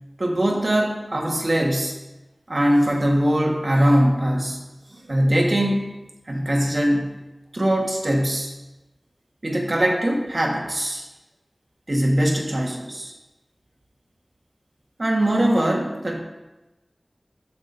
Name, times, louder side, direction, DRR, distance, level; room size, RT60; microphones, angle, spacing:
voice 1, 0.2-1.9 2.5-4.6 4.9-5.9 6.3-7.1 7.5-8.5 9.4-11.0 11.9-13.1 15.0-16.2, right 1 dB, 55° right, 0 dB, 1.5 m, -21 dB
12.5 x 5.9 x 2.7 m, 1.1 s
wide cardioid pair, 45°, 0 cm